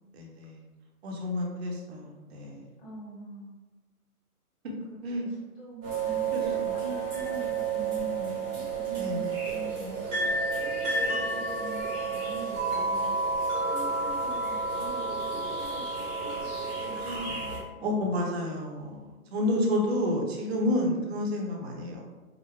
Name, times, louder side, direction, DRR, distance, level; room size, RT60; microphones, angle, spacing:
voice 1, 0.2-0.6 1.0-2.7 5.0-5.3 6.3-6.5 9.0-9.3 16.9-17.3 17.8-22.0, left 1 dB, 45° right, 0 dB, 0.9 m, -30 dB
voice 2, 2.8-3.6 4.8-18.4 19.4-20.0, right 1 dB, 25° left, -5 dB, 1.3 m, -44 dB
sound 1, 5.8-17.6, right 4 dB, 15° right, 0.9 m, -30 dB
5.0 x 2.1 x 3.1 m, 1.2 s
hypercardioid pair, 140°, 45 cm